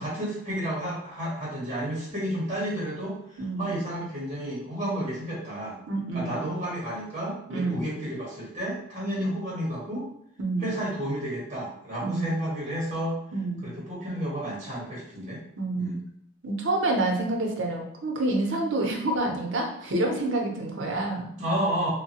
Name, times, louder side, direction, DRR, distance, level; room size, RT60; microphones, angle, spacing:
voice 1, 0.0-5.8 6.1-10.1 10.6-13.2 13.6-15.4 15.7-16.0 21.4-21.9, right 1 dB, 30° right, -6 dB, 0.8 m, -31 dB
voice 2, 3.4-3.8 5.9-6.5 7.5-7.9 10.4-10.7 12.0-12.4 13.3-13.7 15.6-16.0 16.4-21.3, right 2 dB, 75° right, 1 dB, 0.6 m, -28 dB
3.0 x 2.2 x 2.8 m, 0.72 s
head